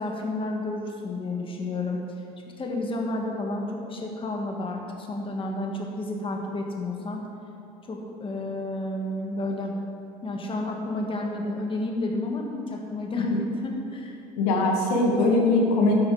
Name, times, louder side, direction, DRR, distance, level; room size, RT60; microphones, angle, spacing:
voice 1, 0.0-2.0 2.6-7.2 7.9-9.7 10.2-13.3 13.6-14.2, left 2 dB, 25° left, 0 dB, 1.9 m, -31 dB
voice 2, 14.4-16.0, left 2 dB, 85° left, -1 dB, 2.0 m, -21 dB
12.0 x 8.6 x 5.0 m, 2.6 s
supercardioid pair, 95°, 19 cm